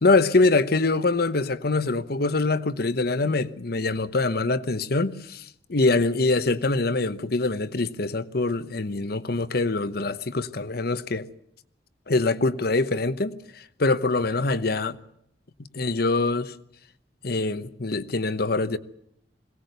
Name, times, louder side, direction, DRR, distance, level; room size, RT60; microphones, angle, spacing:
voice 1, 0.0-11.3 12.1-15.0 15.7-16.5 17.2-18.8, left 3 dB, 60° left, 1.0 m, -24 dB
22.0 x 18.0 x 8.1 m
head